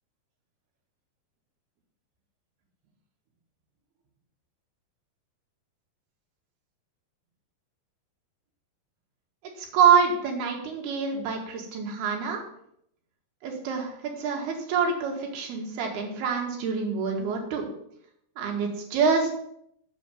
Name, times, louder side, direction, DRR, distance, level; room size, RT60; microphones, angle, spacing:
voice 1, 9.6-12.4 13.4-17.7 18.4-19.3, right 6 dB, 75° right, 2 dB, 3.7 m, -26 dB
7.1 x 7.0 x 7.7 m, 0.72 s
omnidirectional pair, 4.7 m